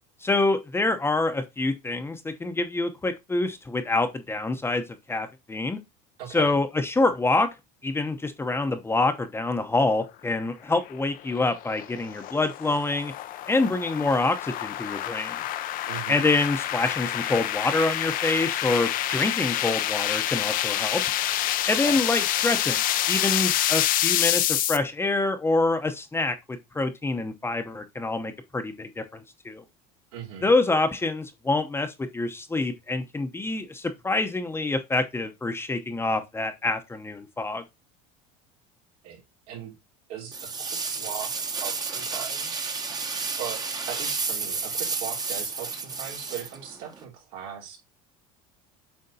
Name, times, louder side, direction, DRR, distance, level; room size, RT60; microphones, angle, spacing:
voice 1, 0.2-5.8 6.3-7.5 7.8-13.1 13.5-15.4 16.1-21.0 21.7-29.6 30.4-37.6, left 2 dB, 15° left, 0.9 m, -26 dB
voice 2, 6.2-6.6 15.9-16.2 21.7-22.0 30.1-30.5 39.0-39.2 39.5-39.7 40.1-42.8 43.4-47.8, right 9 dB, 80° right, 3.0 m, -39 dB
sound 1, 10.8-24.8, left 13 dB, 50° left, 0.6 m, -27 dB
sound 2, 40.3-47.0, right 4 dB, 20° right, 1.0 m, -31 dB
7.8 x 4.3 x 2.8 m
supercardioid pair, 115°, 18 cm